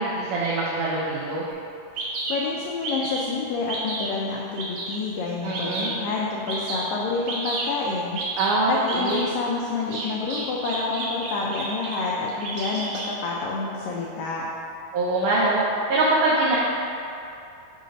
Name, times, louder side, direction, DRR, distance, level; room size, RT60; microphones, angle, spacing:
voice 1, 0.0-1.5 5.4-5.9 8.4-9.3 14.9-16.6, right 2 dB, 85° right, -5 dB, 1.8 m, -23 dB
Bird vocalization bird call bird song, 1.5-1.6 2.0-2.4 2.8-3.3 3.7-4.1 4.6-5.0 5.5-6.0 6.5-6.8 7.3-7.7 8.1-8.5 8.9-9.2 9.9-12.0 12.3-13.1, right 3 dB, 70° right, 1.9 m, -31 dB
voice 2, 2.3-8.2 8.7-14.4, left 4 dB, 85° left, -3 dB, 1.9 m, -28 dB
6.5 x 3.9 x 5.1 m, 2.7 s
omnidirectional pair, 4.6 m